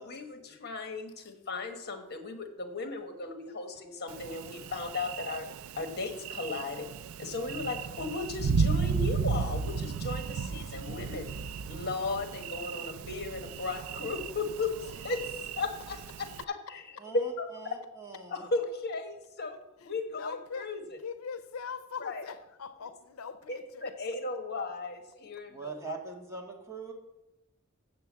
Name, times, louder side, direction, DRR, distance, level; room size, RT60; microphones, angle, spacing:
voice 1, 0.0-5.5 5.7-6.9 7.2-11.3 11.7-17.5 18.3-19.6 19.8-21.0 22.0-22.3 23.5-26.0, left 3 dB, 50° left, 6 dB, 1.3 m, -36 dB
Thunder, 4.1-16.4, right 5 dB, 80° right, 0.4 m, -34 dB
voice 2, 17.0-17.3 17.6-18.4 25.5-26.9, right 4 dB, 15° right, 0 dB, 1.6 m, -42 dB
voice 3, 20.2-20.7 21.0-23.9, left 5 dB, 85° left, 12 dB, 0.6 m, -41 dB
7.4 x 6.8 x 7.4 m, 0.98 s
head